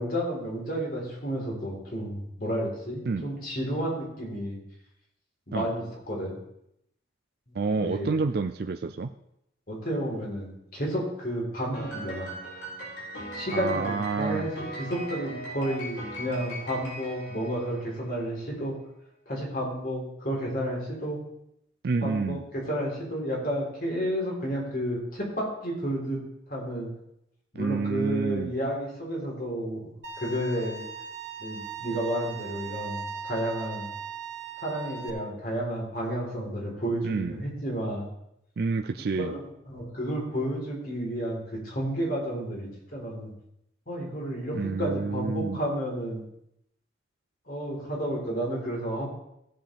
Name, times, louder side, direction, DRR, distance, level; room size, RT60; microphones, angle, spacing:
voice 1, 0.0-4.6 5.5-6.4 7.5-7.6 7.8-8.2 9.7-12.3 13.3-18.8 19.3-21.2 22.0-26.2 26.5-26.9 27.5-30.8 31.4-33.9 34.6-38.1 39.1-43.3 43.9-46.2 47.5-49.1, equal, 50° left, -3 dB, 3.8 m, -31 dB
voice 2, 7.6-9.1 13.5-14.5 21.8-22.4 27.6-28.5 37.0-37.4 38.6-39.3 44.5-45.6, right 4 dB, 55° right, 6 dB, 0.4 m, -28 dB
Piano, 11.7-18.3, equal, 80° left, 4.1 m, -39 dB
Bowed string instrument, 30.0-35.1, right 6 dB, 75° right, 2.7 m, -38 dB
16.5 x 7.7 x 3.5 m, 0.80 s
head